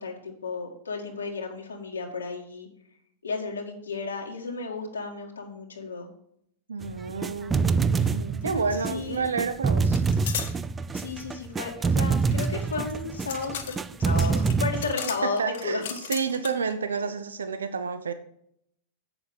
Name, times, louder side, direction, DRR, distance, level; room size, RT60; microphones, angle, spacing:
voice 1, 0.0-2.7 3.2-6.1 8.5-9.2 10.9-15.9 17.0-17.1, left 4 dB, 90° left, 0 dB, 1.9 m, -33 dB
voice 2, 6.7-10.0 15.4-15.8 16.1-18.1, right 5 dB, 85° right, 10 dB, 0.7 m, -30 dB
sound 1, 6.8-14.9, right 5 dB, 20° right, 0.4 m, -26 dB
sound 2, 8.0-8.2 8.4-9.2 9.9-10.5 11.8-16.7, left 8 dB, 65° left, 1.6 m, -37 dB
7.9 x 7.0 x 6.2 m, 0.70 s
hypercardioid pair, 100°, 0 cm